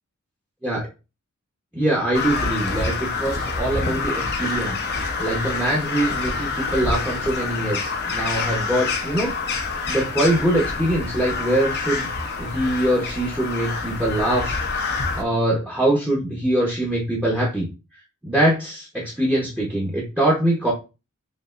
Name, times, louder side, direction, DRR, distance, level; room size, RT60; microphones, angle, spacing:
voice 1, 1.7-4.8 5.2-9.3 9.9-12.1 12.4-14.6 15.2-17.7 18.2-20.7, right 1 dB, 5° right, -3 dB, 1.0 m, -23 dB
Crow, 2.1-15.2, left 4 dB, 50° left, 0.7 m, -27 dB
5.3 x 2.7 x 2.5 m, 0.29 s
head